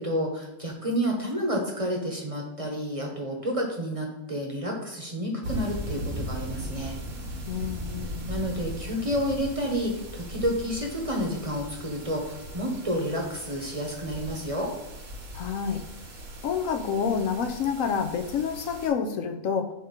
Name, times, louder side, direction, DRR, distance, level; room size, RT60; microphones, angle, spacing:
voice 1, 0.0-7.0 8.3-14.7, equal, 30° right, 0 dB, 0.9 m, -30 dB
sound 1, 5.4-18.9, right 1 dB, 85° right, 1.6 m, -38 dB
voice 2, 7.5-8.3 15.3-15.8 16.4-19.7, left 6 dB, 75° left, 5 dB, 1.1 m, -28 dB
6.4 x 3.0 x 5.0 m, 1.0 s
omnidirectional pair, 1.4 m